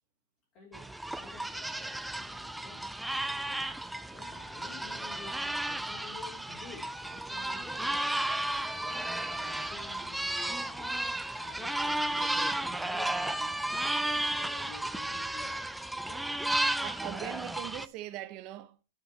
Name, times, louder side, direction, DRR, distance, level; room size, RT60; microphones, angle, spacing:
voice 1, 0.5-2.8 3.5-3.7 4.1-8.0 8.4-15.5 16.1-16.3, left 3 dB, 30° left, 3.2 m, -51 dB
sound 1, 0.7-17.9, right 1 dB, ahead, 0.4 m, -33 dB
voice 2, 16.8-18.8, right 14 dB, 30° right, 0.8 m, -41 dB
9.9 x 6.3 x 4.1 m
supercardioid pair, 170°, 0 cm